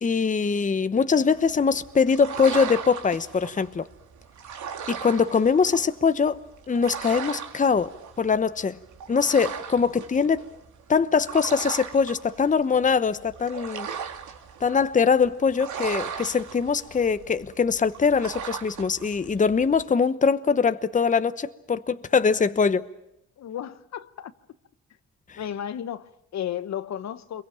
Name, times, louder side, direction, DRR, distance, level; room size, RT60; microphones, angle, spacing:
voice 1, 0.0-3.9 4.9-6.4 6.7-8.8 9.1-10.4 10.9-13.9 14.6-22.8 25.3-25.4, left 5 dB, 25° left, 1.0 m, -22 dB
sound 1, 1.3-19.8, right 7 dB, 75° right, 3.0 m, -38 dB
voice 2, 23.4-24.3 25.4-27.4, left 10 dB, 60° left, 1.1 m, -33 dB
27.0 x 22.5 x 8.9 m
cardioid pair, 90°, 30 cm